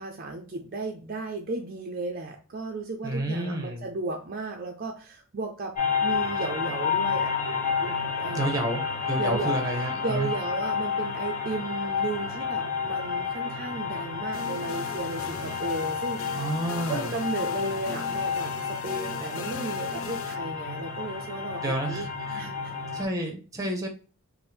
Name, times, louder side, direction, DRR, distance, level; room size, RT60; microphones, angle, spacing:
voice 1, 0.0-7.3 7.8-8.6 9.2-16.5 16.9-22.1 22.4-22.7 23.1-23.3, right 3 dB, 45° right, 3 dB, 0.4 m, -34 dB
voice 2, 3.0-3.8 8.3-8.8 9.1-10.3 16.3-17.1 21.6-22.5 22.9-23.9, right 1 dB, 15° right, 3 dB, 0.8 m, -30 dB
sound 1, 5.7-23.0, left 6 dB, 40° left, 1.3 m, -30 dB
sound 2, 14.3-20.4, left 6 dB, 70° left, 0.4 m, -39 dB
4.3 x 2.1 x 3.4 m, 0.36 s
head